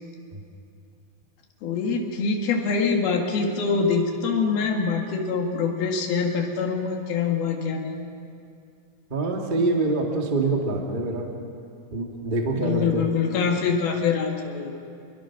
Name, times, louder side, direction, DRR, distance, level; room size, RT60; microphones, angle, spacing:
voice 1, 1.6-7.9 12.5-14.7, left 5 dB, 80° left, 2 dB, 3.7 m, -24 dB
voice 2, 9.1-11.3 11.9-13.1, right 2 dB, 20° right, 1 dB, 1.4 m, -25 dB
27.5 x 22.0 x 6.0 m, 2.4 s
omnidirectional pair, 4.3 m